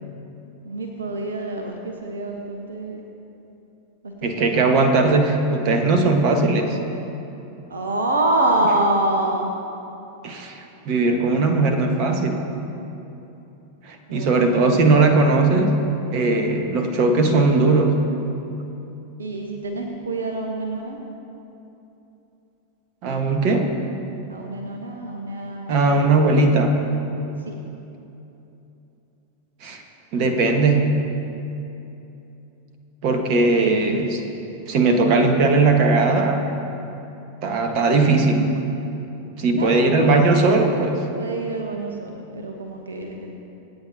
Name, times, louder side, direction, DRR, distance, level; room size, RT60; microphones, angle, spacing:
voice 1, 0.6-3.0 4.0-5.0 7.7-9.5 14.1-14.9 19.2-21.0 24.3-26.7 27.5-27.6 33.6-34.1 39.5-40.2 41.2-43.3, right 2 dB, 70° right, 3 dB, 1.1 m, -27 dB
voice 2, 4.2-6.8 10.2-12.4 13.8-15.8 16.1-18.0 23.0-23.7 25.7-26.8 29.6-29.8 30.1-31.0 33.0-34.2 34.7-36.5 37.4-38.5 39.4-41.0, right 3 dB, 40° right, 5 dB, 1.4 m, -19 dB
26.0 x 9.0 x 2.8 m, 2.9 s
figure-of-eight pair, 90°, 0 cm